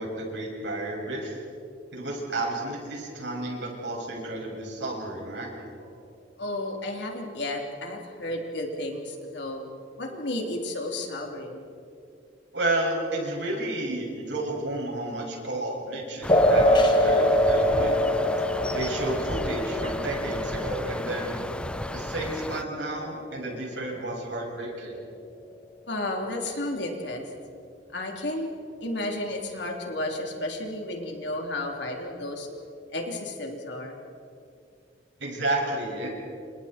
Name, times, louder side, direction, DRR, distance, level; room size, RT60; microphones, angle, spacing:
voice 1, 0.0-1.4 1.9-5.5 5.8-5.9 12.5-18.0 18.7-21.4 21.9-24.9 35.2-36.1, right 2 dB, 75° right, -1 dB, 6.9 m, -31 dB
voice 2, 6.4-9.7 10.0-11.6 25.9-27.2 27.9-28.5 28.8-32.5 32.9-34.0, left 1 dB, 70° left, 1 dB, 3.5 m, -32 dB
sound 1, 16.2-22.6, left 1 dB, 5° left, 0.6 m, -34 dB
sound 2, 16.3-23.3, equal, 25° left, 1.8 m, -24 dB
29.5 x 27.5 x 4.5 m, 2.4 s
head